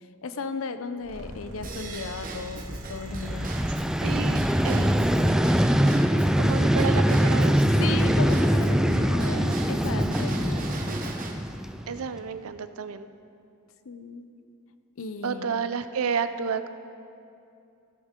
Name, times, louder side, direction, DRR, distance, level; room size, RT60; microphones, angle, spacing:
voice 1, 0.2-2.6 2.9-3.5 6.1-6.2 7.8-11.1 13.9-14.3 15.0-15.6, left 4 dB, 70° left, 10 dB, 0.6 m, -35 dB
sound 1, 1.0-5.3, equal, 65° right, 2.3 m, -41 dB
Drum kit / Drum / Bell, 1.6-11.3, right 2 dB, 40° right, 1.0 m, -39 dB
Vehicle, 3.1-12.1, equal, 5° right, 0.3 m, -23 dB
voice 2, 4.0-5.5 6.4-7.7 11.9-13.1 15.2-16.7, right 6 dB, 85° right, 11 dB, 0.6 m, -31 dB
15.5 x 11.5 x 3.7 m, 2.6 s
head